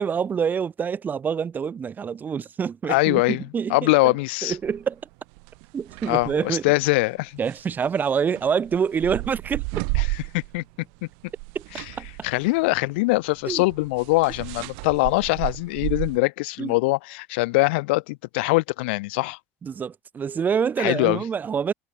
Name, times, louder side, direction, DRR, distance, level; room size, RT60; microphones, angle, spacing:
voice 1, 0.0-5.0 5.7-6.7 7.4-9.6 11.5-11.6 12.0-12.1 13.4-13.6 16.6-16.8 19.6-21.7, right 7 dB, 30° right, 1.0 m, -26 dB
voice 2, 2.9-3.4 3.7-4.5 6.1-7.4 10.0-10.1 10.3-10.6 12.2-19.4 20.8-21.2, left 24 dB, 85° left, 0.6 m, -22 dB
sound 1, 4.5-4.8 5.3-6.4 7.4-10.7 11.0-16.2, right 40 dB or more, 75° right, 2.8 m, -33 dB
supercardioid pair, 95°, 6 cm